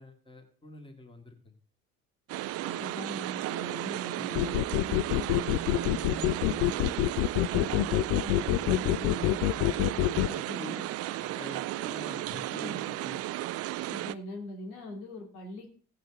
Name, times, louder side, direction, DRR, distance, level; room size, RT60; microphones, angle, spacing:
voice 1, 0.0-1.4 4.1-4.2 6.7-7.0 7.7-8.0 8.4-8.5 11.2-13.2, left 1 dB, 10° left, 4 dB, 2.3 m, -47 dB
sound 1, 2.3-14.2, right 15 dB, 35° right, 0.5 m, -34 dB
voice 2, 2.6-6.6 7.4-10.8 12.5-12.8 13.9-15.7, equal, 65° left, 3 dB, 2.9 m, -41 dB
sound 2, 4.3-10.3, left 19 dB, 45° left, 0.5 m, -26 dB
15.5 x 9.3 x 3.8 m, 0.43 s
figure-of-eight pair, 60°, 46 cm